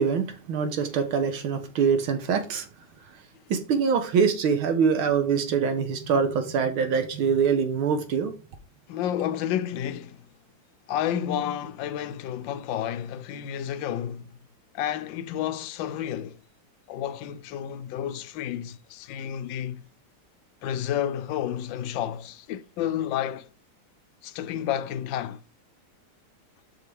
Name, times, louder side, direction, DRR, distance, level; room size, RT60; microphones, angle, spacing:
voice 1, 0.0-2.7 3.5-8.3, right 6 dB, 75° right, 1.9 m, -24 dB
voice 2, 8.9-10.3 10.9-14.4 14.7-16.4 16.9-19.8 20.6-23.5 24.2-25.4, left 10 dB, 75° left, 1.2 m, -31 dB
7.6 x 6.1 x 3.4 m
omnidirectional pair, 2.4 m